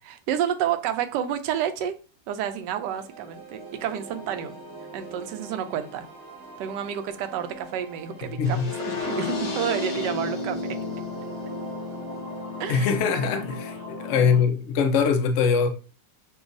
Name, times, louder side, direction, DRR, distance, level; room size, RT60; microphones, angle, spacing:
voice 1, 0.0-1.9 2.3-4.5 4.9-6.1 6.6-10.6 12.6-12.9, right 9 dB, 75° right, 1.2 m, -30 dB
sound 1, 2.9-13.0, right 4 dB, 15° right, 0.9 m, -43 dB
voice 2, 8.3-8.7 12.7-15.7, left 6 dB, 75° left, 0.6 m, -22 dB
sound 2, 8.4-14.4, left 3 dB, 60° left, 1.5 m, -33 dB
6.9 x 2.3 x 2.6 m
omnidirectional pair, 2.0 m